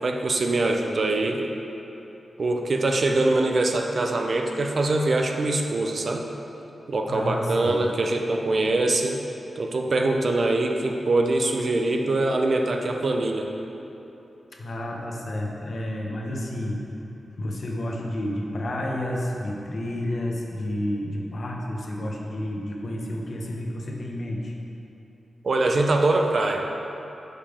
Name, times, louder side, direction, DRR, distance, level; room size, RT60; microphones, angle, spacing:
voice 1, 0.0-1.4 2.4-6.2 6.9-9.2 9.6-13.5 25.4-26.7, right 2 dB, 50° right, 2 dB, 0.5 m, -23 dB
voice 2, 7.1-7.9 14.6-16.8 17.4-24.5, left 1 dB, 55° left, -1 dB, 0.8 m, -30 dB
5.4 x 5.2 x 4.9 m, 2.9 s
wide cardioid pair, 105°, 0 cm